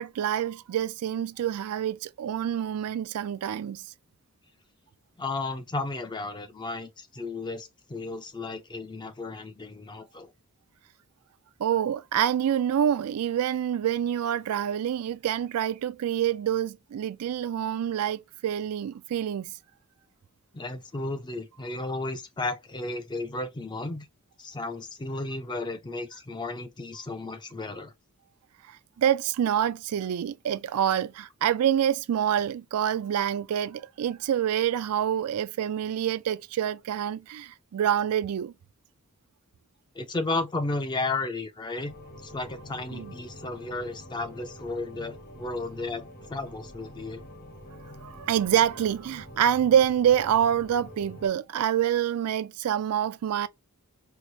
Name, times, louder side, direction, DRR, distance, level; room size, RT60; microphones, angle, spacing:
voice 1, 0.0-3.8 11.6-19.5 29.0-38.5 42.9-43.1 48.0-53.5, right 9 dB, 75° right, 0.3 m, -26 dB
voice 2, 5.2-10.3 20.5-24.1 24.4-27.9 40.0-41.9 42.2-46.0 46.3-47.2, left 2 dB, 20° left, 0.5 m, -33 dB
sound 1, 41.8-51.3, equal, 45° left, 1.1 m, -46 dB
4.5 x 2.0 x 2.6 m
head